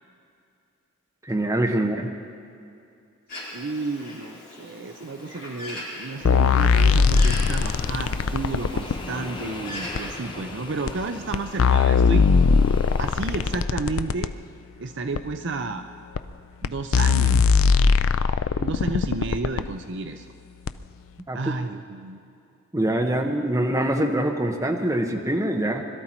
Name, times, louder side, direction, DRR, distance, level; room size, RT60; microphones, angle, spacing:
voice 1, 1.3-2.1 21.3-21.4 22.7-25.8, right 1 dB, 15° right, 2 dB, 1.0 m, -24 dB
Bird, 3.3-10.2, left 1 dB, 40° left, 4.5 m, -39 dB
voice 2, 3.5-12.3 13.0-14.3 14.8-15.8 16.6-17.6 18.6-20.2 21.3-22.2, right 3 dB, 55° right, 7 dB, 0.5 m, -31 dB
sound 1, 6.3-9.0 10.0-10.1 10.9-11.0 11.3-14.3 15.2-15.3 16.2-16.3 16.6-16.7 16.9-19.7 20.7-20.8, left 5 dB, 70° left, 0.4 m, -20 dB
sound 2, 6.6-13.6, left 2 dB, 20° left, 0.9 m, -39 dB
21.5 x 12.5 x 4.4 m, 2.5 s
head